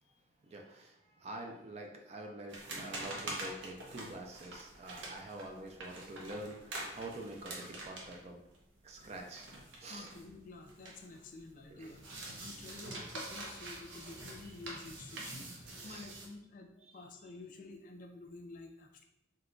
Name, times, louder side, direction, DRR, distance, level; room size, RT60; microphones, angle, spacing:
voice 1, 0.4-8.4 8.8-9.5 9.8-10.1 11.7-11.9 15.8-16.2, right 1 dB, 35° right, 2 dB, 0.4 m, -46 dB
sound 1, 2.5-11.2 11.5-16.3, right 2 dB, 90° right, 0.7 m, -46 dB
voice 2, 9.8-12.0 12.4-19.0, left 3 dB, 45° left, 4 dB, 0.3 m, -50 dB
2.9 x 2.2 x 3.7 m, 0.85 s
head